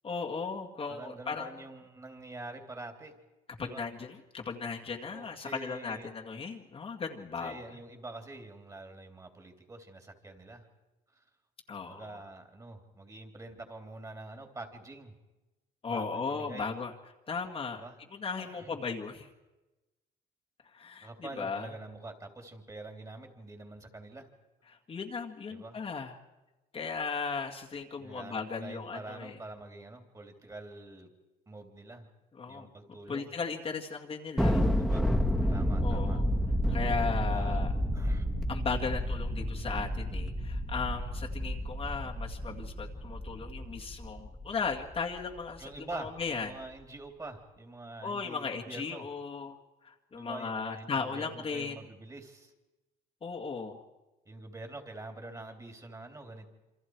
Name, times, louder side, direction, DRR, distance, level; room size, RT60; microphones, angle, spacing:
voice 1, 0.0-1.5 3.6-7.6 11.7-12.2 15.8-16.9 17.3-17.8 18.1-19.3 20.7-21.7 24.7-26.1 26.7-29.4 32.3-32.7 33.1-34.6 35.8-36.3 36.7-37.7 38.5-46.5 48.0-49.6 49.8-51.8 53.2-53.8, left 5 dB, 35° left, 0 dB, 2.1 m, -36 dB
voice 2, 0.9-3.2 3.6-3.8 5.1-6.1 7.4-10.7 11.1-11.2 11.8-15.1 15.9-16.7 17.8-18.0 18.4-18.8 21.0-24.3 25.5-25.8 28.0-31.1 31.5-32.1 32.5-33.3 34.8-35.1 35.5-36.2 37.3-37.6 37.9-38.3 45.6-49.1 50.1-52.5 54.2-56.5, right 2 dB, 20° right, 5 dB, 3.2 m, -46 dB
Thunder, 34.4-45.0, equal, ahead, 2.2 m, -30 dB
28.0 x 25.5 x 4.7 m, 1.1 s
cardioid pair, 110°, 17 cm